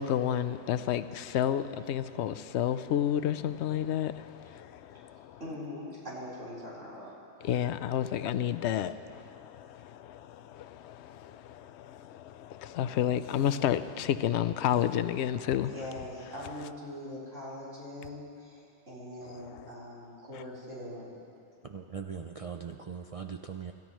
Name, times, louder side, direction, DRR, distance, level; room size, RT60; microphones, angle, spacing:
voice 1, 0.0-5.4 7.4-15.7 19.2-19.7, left 10 dB, 70° left, 0.8 m, -31 dB
voice 2, 5.4-7.1 15.6-21.2, left 1 dB, 80° right, 4.5 m, -42 dB
voice 3, 21.7-23.7, right 6 dB, 60° right, 0.3 m, -40 dB
27.0 x 13.5 x 3.1 m
omnidirectional pair, 1.3 m